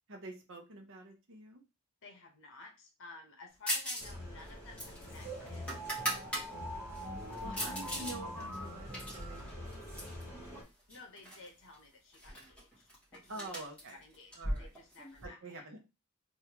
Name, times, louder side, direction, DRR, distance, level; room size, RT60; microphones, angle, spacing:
voice 1, 0.1-1.6 7.4-10.1 13.3-14.0 14.4-14.7 15.2-15.8, right 2 dB, 60° right, 3 dB, 0.9 m, -47 dB
voice 2, 2.0-5.8 7.3-7.8 10.3-13.5 13.9-15.6, left 3 dB, 60° left, 2 dB, 1.0 m, -54 dB
sound 1, 3.7-4.1 4.4-6.5 6.9-8.2 8.5-10.2 10.9-11.5 11.7-11.8 12.1-15.3, equal, 5° left, 1.3 m, -39 dB
sound 2, 4.0-10.6, equal, 15° right, 1.7 m, -43 dB
3.5 x 2.6 x 2.9 m, 0.27 s
head